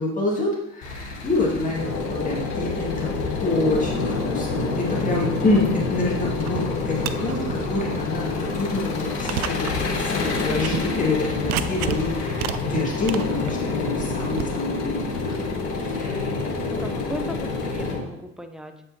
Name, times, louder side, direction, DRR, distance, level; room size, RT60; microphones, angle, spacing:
voice 1, 0.0-1.8 2.1-3.1 3.4-15.3 15.8-16.4, left 2 dB, 20° left, -4 dB, 2.1 m, -27 dB
Engine, 0.8-17.9, left 3 dB, 70° left, 1.1 m, -35 dB
sound 1, 1.8-18.0, left 3 dB, 50° left, 1.9 m, -28 dB
sound 2, 6.4-6.6 6.9-7.5 8.0-8.1 8.8-8.9 9.3-9.8 10.0-10.1 10.6-10.9 11.4-12.0 12.3-14.5, right 12 dB, 50° right, 0.4 m, -30 dB
voice 2, 16.7-18.8, right 1 dB, ahead, 6 dB, 0.5 m, -37 dB
7.4 x 4.4 x 2.9 m, 0.86 s
hypercardioid pair, 60°, 36 cm